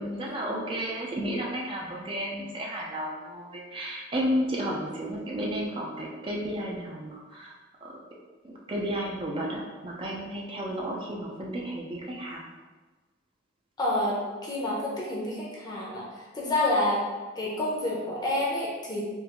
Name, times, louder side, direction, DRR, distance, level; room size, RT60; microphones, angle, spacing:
voice 1, 0.0-7.5 7.8-8.0 8.4-12.4, equal, 25° right, -2 dB, 0.4 m, -32 dB
voice 2, 13.8-17.0 17.4-19.0, left 1 dB, 20° left, -5 dB, 0.6 m, -28 dB
3.6 x 2.5 x 2.8 m, 1.3 s
head